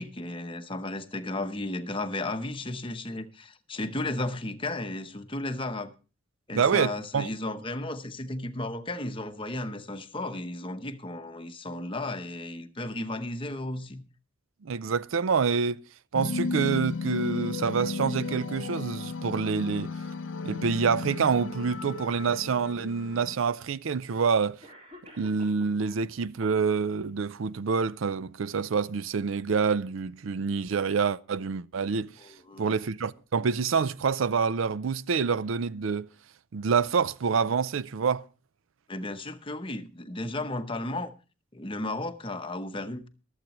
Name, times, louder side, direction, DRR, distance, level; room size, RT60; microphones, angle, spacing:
voice 1, 0.0-5.9 6.5-14.0 32.2-32.8 38.9-41.1 41.5-43.1, left 2 dB, 25° left, 0.8 m, -34 dB
voice 2, 6.5-7.3 14.6-15.8 16.1-20.0 20.4-24.6 25.2-32.1 32.6-36.1 36.5-38.2, right 5 dB, 80° right, 0.5 m, -27 dB
sound 1, 16.1-23.3, left 4 dB, 70° left, 0.6 m, -34 dB
Cough, 24.0-24.1 24.6-26.0 26.4-27.0, left 1 dB, 30° right, 3.7 m, -51 dB
24.0 x 8.1 x 3.0 m
head